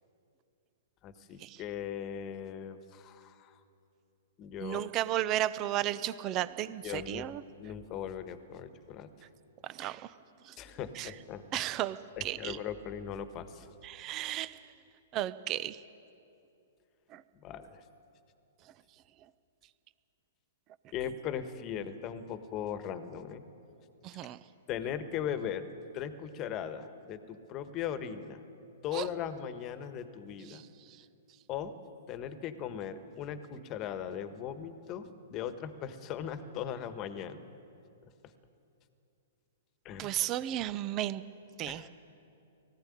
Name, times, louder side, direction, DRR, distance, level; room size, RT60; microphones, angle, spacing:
voice 1, 1.0-3.5 4.4-4.9 6.8-7.3 7.6-9.1 10.6-11.4 12.2-13.7 17.3-17.8 20.9-23.4 24.7-25.6 25.9-28.4 28.8-30.6 31.5-31.8 32.1-37.4 39.8-40.1 41.7-41.9, left 9 dB, 35° left, 10 dB, 1.4 m, -38 dB
voice 2, 4.6-7.4 9.6-10.2 10.4-10.6 10.9-11.1 11.5-12.6 13.8-14.6 15.1-15.8 17.1-17.2 24.0-24.4 28.9-29.1 30.5-31.0 40.0-41.2 41.6-41.9, right 13 dB, 35° right, 15 dB, 0.8 m, -34 dB
19.0 x 15.0 x 10.0 m, 2.7 s
hypercardioid pair, 125°, 0 cm